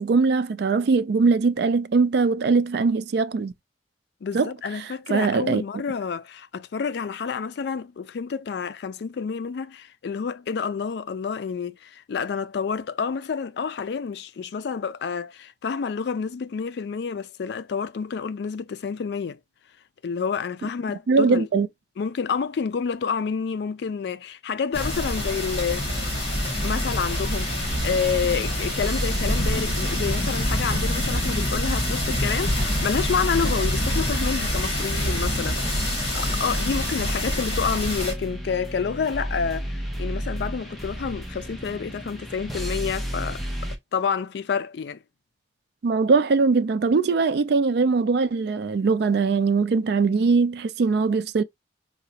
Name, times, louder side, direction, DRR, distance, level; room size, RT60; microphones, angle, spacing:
voice 1, 0.0-3.5 4.3-4.5 4.8-5.6 21.1-21.7 45.8-51.4, right 4 dB, 60° right, 0.4 m, -21 dB
voice 2, 4.2-19.4 20.0-21.5 22.0-25.9 26.6-43.4 43.9-45.0, left 6 dB, 65° left, 0.4 m, -29 dB
sound 1, 24.7-38.1, left 1 dB, 30° left, 1.7 m, -26 dB
sound 2, 26.3-43.8, equal, ahead, 0.7 m, -33 dB
4.8 x 2.1 x 2.7 m
head